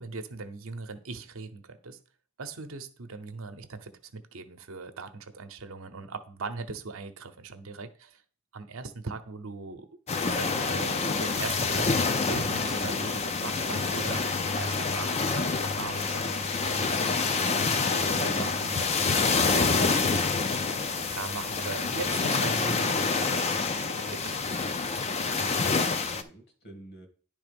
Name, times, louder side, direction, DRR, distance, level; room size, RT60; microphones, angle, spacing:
voice 1, 0.0-2.0 2.4-8.2 8.5-9.9 10.3-11.9 12.3-17.0 17.6-18.9 19.6-20.3 21.1-23.5 23.8-24.4, right 4 dB, 75° right, 0.8 m, -39 dB
sound 1, 10.1-26.2, left 4 dB, 30° left, 0.5 m, -27 dB
voice 2, 11.0-11.3 23.9-24.3 25.1-27.1, right 1 dB, 50° left, 1.7 m, -48 dB
10.5 x 3.6 x 5.3 m
head